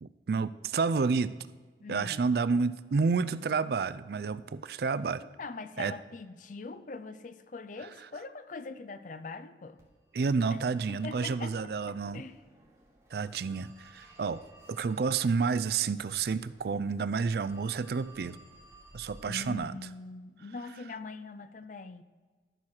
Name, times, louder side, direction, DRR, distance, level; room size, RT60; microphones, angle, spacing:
voice 1, 0.0-1.3 1.9-5.2 5.8-5.9 10.1-12.2 13.1-14.4 14.7-18.4 18.9-19.8, right 5 dB, 60° right, 16 dB, 0.4 m, -30 dB
voice 2, 1.8-2.3 5.2-9.8 10.5-10.6 10.9-11.6 11.9-12.4 19.3-22.0, left 3 dB, 45° left, 12 dB, 0.5 m, -42 dB
Telephone, 9.8-19.6, right 1 dB, 15° right, 2.8 m, -58 dB
13.0 x 4.5 x 6.4 m, 1.4 s
head